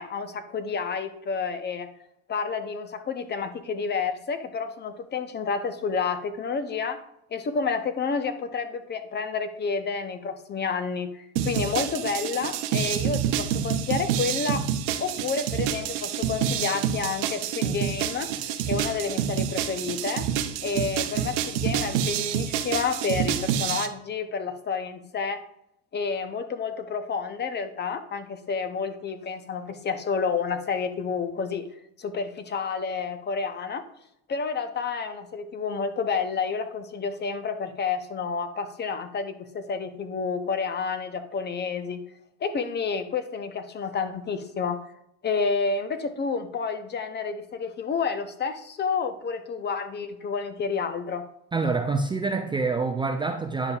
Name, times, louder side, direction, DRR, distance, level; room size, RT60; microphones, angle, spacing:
voice 1, 0.0-1.9 2.3-7.0 7.3-14.6 15.0-18.3 18.7-20.3 20.6-25.4 25.9-31.7 32.0-33.8 34.3-42.0 42.4-44.8 45.2-51.2, left 5 dB, 30° left, 0.7 m, -30 dB
sound 1, 11.4-23.9, right 9 dB, 80° right, 0.7 m, -28 dB
voice 2, 51.5-53.8, right 4 dB, 15° right, 0.4 m, -26 dB
9.7 x 5.2 x 2.4 m
supercardioid pair, 95°, 35 cm